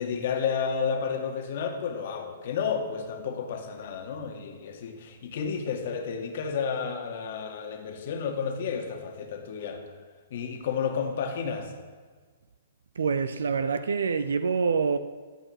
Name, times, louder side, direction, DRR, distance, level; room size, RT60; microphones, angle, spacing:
voice 1, 0.0-9.8 10.3-11.7, left 6 dB, 55° left, 2.0 m, -31 dB
voice 2, 13.0-15.0, right 5 dB, 75° right, 0.6 m, -26 dB
13.0 x 5.7 x 8.8 m
figure-of-eight pair, 120°, 0 cm